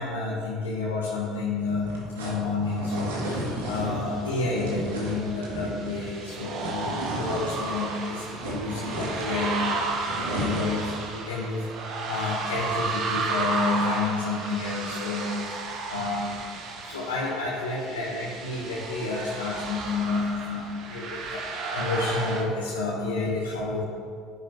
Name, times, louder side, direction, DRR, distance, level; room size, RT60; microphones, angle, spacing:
voice 1, 0.0-15.6 15.9-23.8, left 3 dB, 85° left, -5 dB, 1.2 m, -30 dB
sound 1, 1.6-7.9 8.2-10.9, right 1 dB, 80° right, 2.3 m, -34 dB
sound 2, 4.0-22.4, right 3 dB, 55° right, 1.4 m, -33 dB
10.5 x 10.5 x 3.0 m, 2.2 s
hypercardioid pair, 70°, 0 cm